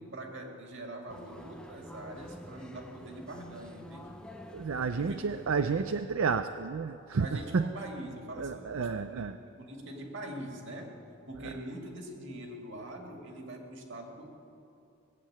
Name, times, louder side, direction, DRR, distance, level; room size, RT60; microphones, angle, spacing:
voice 1, 0.0-4.1 5.0-5.5 7.2-14.3, right 1 dB, 60° right, 2 dB, 2.1 m, -43 dB
sound 1, 1.1-6.1, left 1 dB, 5° left, 0.7 m, -49 dB
voice 2, 4.5-7.3 7.5-7.7 8.4-9.3, right 5 dB, 80° right, 9 dB, 0.5 m, -31 dB
19.5 x 7.6 x 8.6 m, 2.8 s
head